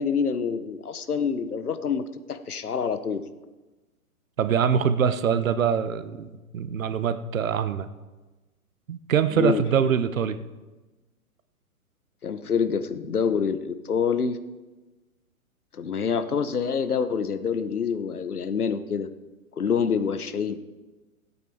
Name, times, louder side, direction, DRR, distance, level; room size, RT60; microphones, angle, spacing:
voice 1, 0.0-3.2 9.3-9.6 12.2-14.4 15.7-19.1 19.6-20.6, left 6 dB, 80° left, 11 dB, 1.0 m, -26 dB
voice 2, 4.4-7.9 8.9-10.4, right 7 dB, 65° right, 11 dB, 1.0 m, -24 dB
17.0 x 8.5 x 4.7 m, 1.2 s
figure-of-eight pair, 120°, 44 cm